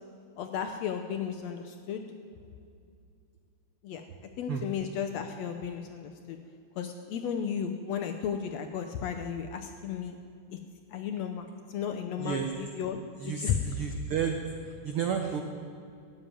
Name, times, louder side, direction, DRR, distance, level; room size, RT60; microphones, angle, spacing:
voice 1, 0.4-2.0 3.8-4.0 4.4-6.4 6.8-10.2 10.9-13.0 13.3-13.6, left 8 dB, 75° left, 6 dB, 1.6 m, -34 dB
voice 2, 12.2-12.5 13.2-14.4 14.8-15.4, right 7 dB, 75° right, 4 dB, 1.2 m, -31 dB
14.5 x 8.7 x 9.0 m, 2.4 s
omnidirectional pair, 3.7 m